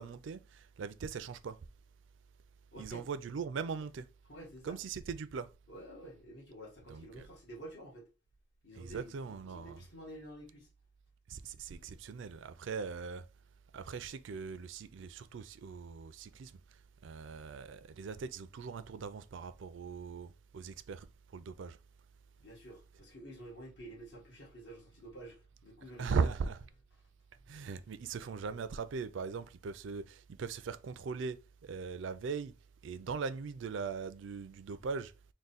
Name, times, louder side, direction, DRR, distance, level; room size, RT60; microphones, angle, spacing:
voice 1, 0.0-1.6 2.8-4.1 4.6-5.5 6.9-7.3 8.7-9.9 11.3-13.3 13.7-16.5 17.0-21.1 21.3-21.8 26.0-26.7 27.5-31.4 31.6-32.5 32.8-35.1, right 5 dB, 65° right, 0.4 m, -39 dB
voice 2, 2.7-3.0 4.3-4.8 5.7-8.1 8.6-10.7 11.8-12.0 22.4-26.3 27.4-27.5, right 1 dB, 55° left, 1.5 m, -50 dB
3.6 x 2.2 x 4.0 m
head